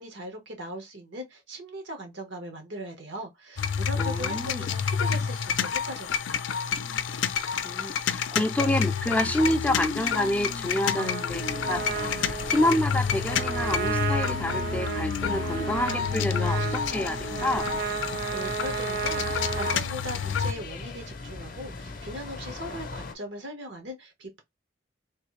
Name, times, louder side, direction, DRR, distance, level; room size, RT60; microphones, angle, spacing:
voice 1, 0.0-6.5 18.1-24.4, equal, 80° right, 1.2 m, -39 dB
sound 1, 3.6-20.5, left 6 dB, 90° left, 0.4 m, -29 dB
voice 2, 4.0-4.6 7.6-11.8 12.2-17.7, left 1 dB, 10° left, 0.3 m, -28 dB
Trumpet, 10.9-19.8, right 6 dB, 55° right, 0.5 m, -33 dB
sound 2, 11.3-23.1, left 3 dB, 45° left, 0.6 m, -40 dB
3.2 x 2.6 x 3.2 m
head